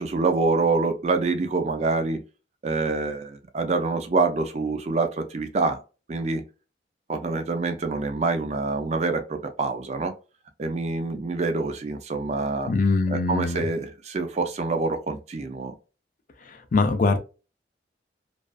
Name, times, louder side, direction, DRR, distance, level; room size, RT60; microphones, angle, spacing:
voice 1, 0.0-2.2 2.6-5.8 6.1-6.4 7.1-10.1 10.6-12.7 13.1-15.8, right 3 dB, 35° right, 0.4 m, -26 dB
voice 2, 12.7-13.6 16.7-17.2, left 3 dB, 45° left, 0.4 m, -22 dB
2.4 x 2.3 x 2.3 m
head